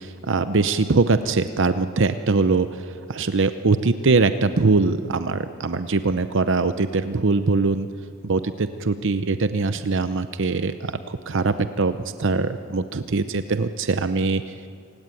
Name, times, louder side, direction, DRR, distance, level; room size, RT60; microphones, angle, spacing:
voice 1, 0.0-7.9 8.2-14.4, right 3 dB, 65° right, 11 dB, 0.8 m, -22 dB
28.0 x 18.0 x 9.1 m, 2.3 s
head